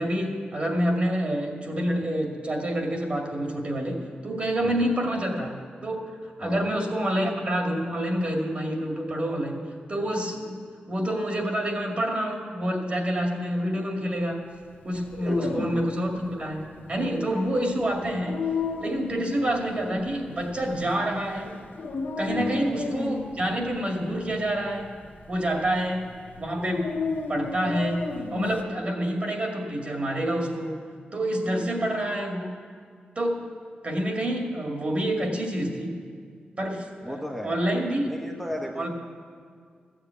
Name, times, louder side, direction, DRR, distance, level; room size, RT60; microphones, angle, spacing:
voice 1, 0.0-5.6 5.8-9.6 9.9-14.4 14.8-18.4 18.8-21.6 22.2-25.0 25.3-26.1 26.4-30.8 31.1-32.5 33.2-33.4 33.8-36.0 36.6-38.1 38.8-38.9, right 1 dB, 40° right, 1 dB, 2.1 m, -28 dB
voice 2, 4.6-4.9 6.4-6.8 15.2-15.8 22.4-22.7 37.0-37.6 38.0-38.9, equal, ahead, 0 dB, 0.9 m, -35 dB
Dog, 14.9-28.6, left 4 dB, 75° left, 1.0 m, -34 dB
14.5 x 7.4 x 8.2 m, 2.1 s
wide cardioid pair, 125°, 3 cm